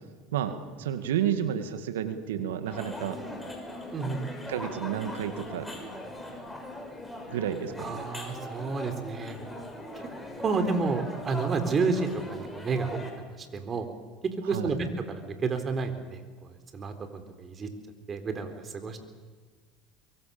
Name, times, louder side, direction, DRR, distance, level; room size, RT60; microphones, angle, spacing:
voice 1, 0.3-3.2 4.5-5.7 7.3-7.9 14.5-14.7, right 9 dB, 90° right, 9 dB, 2.2 m, -31 dB
sound 1, 2.7-13.1, left 1 dB, 5° left, 6.0 m, -40 dB
voice 2, 3.9-4.2 7.8-9.4 10.0-10.1 10.4-13.0 13.4-13.9 14.5-17.7 18.1-19.0, right 4 dB, 35° right, 8 dB, 4.0 m, -30 dB
24.0 x 23.0 x 7.2 m, 1.4 s
supercardioid pair, 95°, 0 cm